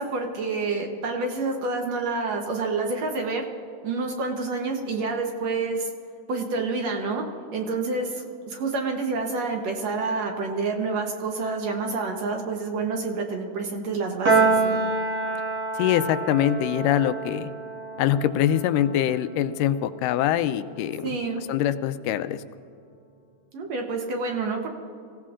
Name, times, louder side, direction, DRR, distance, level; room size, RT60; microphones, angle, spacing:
voice 1, 0.0-3.4 3.8-5.9 6.3-7.2 7.5-14.8 21.0-21.4 23.5-24.7, right 3 dB, 65° right, 2 dB, 1.9 m, -28 dB
Piano, 14.2-20.8, right 3 dB, 40° right, 1.5 m, -27 dB
voice 2, 15.8-17.5 18.0-21.2 21.5-22.4, left 11 dB, 85° left, 11 dB, 2.1 m, -24 dB
25.0 x 16.0 x 2.5 m, 2.4 s
omnidirectional pair, 3.8 m